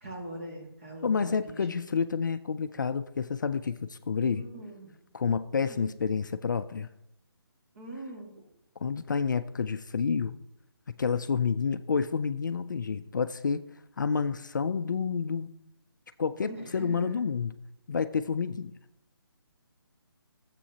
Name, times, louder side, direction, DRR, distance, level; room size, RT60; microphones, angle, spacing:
voice 1, 0.0-1.8 4.1-4.9 5.7-6.0 7.7-8.4 16.5-17.2, right 1 dB, 35° right, 0 dB, 2.0 m, -42 dB
voice 2, 1.0-4.4 5.1-6.9 8.8-10.3 11.0-13.6 14.0-15.5 16.2-17.5 17.9-18.7, left 5 dB, 50° left, 11 dB, 0.4 m, -29 dB
13.0 x 7.5 x 2.8 m, 0.82 s
hypercardioid pair, 170°, 13 cm